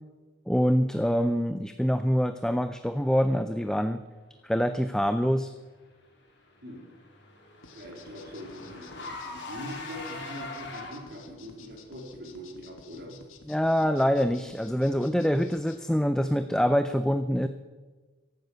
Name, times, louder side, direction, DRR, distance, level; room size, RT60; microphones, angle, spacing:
voice 1, 0.5-4.0 4.4-5.5 13.5-17.5, equal, 5° left, 9 dB, 0.4 m, -25 dB
Car / Engine, 6.3-11.3, left 3 dB, 55° left, 3.8 m, -42 dB
sound 1, 7.6-15.8, left 4 dB, 80° left, 1.7 m, -52 dB
voice 2, 7.7-13.2, equal, 50° right, 1 dB, 3.8 m, -42 dB
14.5 x 11.5 x 6.8 m, 1.3 s
head